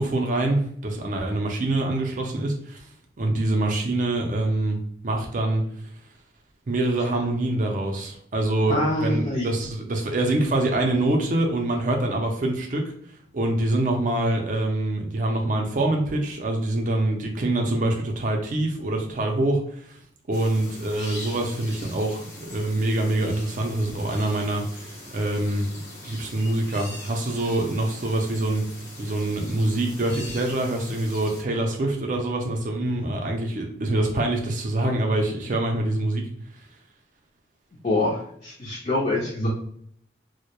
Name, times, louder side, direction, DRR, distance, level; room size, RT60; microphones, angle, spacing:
voice 1, 0.0-2.9 3.2-5.6 6.7-12.8 13.3-20.0 20.3-25.7 26.0-28.6 29.0-36.3, right 2 dB, 40° right, 2 dB, 0.4 m, -25 dB
voice 2, 8.7-9.5 37.8-39.5, left 1 dB, 35° left, -4 dB, 0.4 m, -25 dB
sound 1, 20.3-31.4, left 1 dB, 70° left, 0.9 m, -42 dB
2.2 x 2.1 x 2.9 m, 0.65 s
head